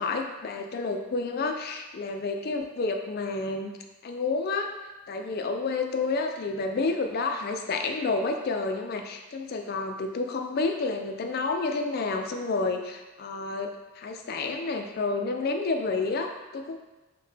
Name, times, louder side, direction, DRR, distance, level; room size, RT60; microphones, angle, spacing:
voice 1, 0.0-3.7 4.0-4.7 5.1-13.7 14.0-16.8, left 3 dB, 45° left, 4 dB, 0.3 m, -30 dB
5.6 x 2.1 x 3.3 m, 1.1 s
head